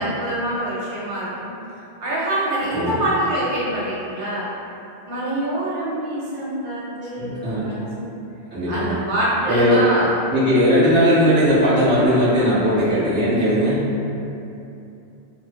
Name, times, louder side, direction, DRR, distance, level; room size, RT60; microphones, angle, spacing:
voice 1, 0.0-1.5 2.0-4.5 5.1-8.1 8.7-10.1, right 1 dB, 85° right, -8 dB, 1.0 m, -25 dB
voice 2, 7.2-7.7 8.5-9.0 9.5-9.8 10.3-13.9, equal, 10° right, -14 dB, 0.9 m, -18 dB
2.1 x 2.0 x 3.0 m, 2.7 s
omnidirectional pair, 1.1 m